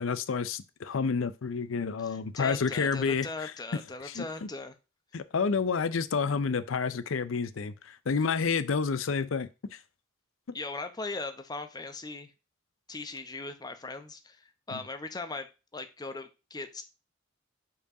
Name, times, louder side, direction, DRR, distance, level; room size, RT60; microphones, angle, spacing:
voice 1, 0.0-3.5 4.0-4.2 5.1-9.5 14.7-14.8, left 5 dB, 85° left, 0.5 m, -29 dB
voice 2, 2.0-4.7 10.5-12.3 12.9-16.8, left 3 dB, 20° left, 0.8 m, -39 dB
5.5 x 4.7 x 4.9 m
head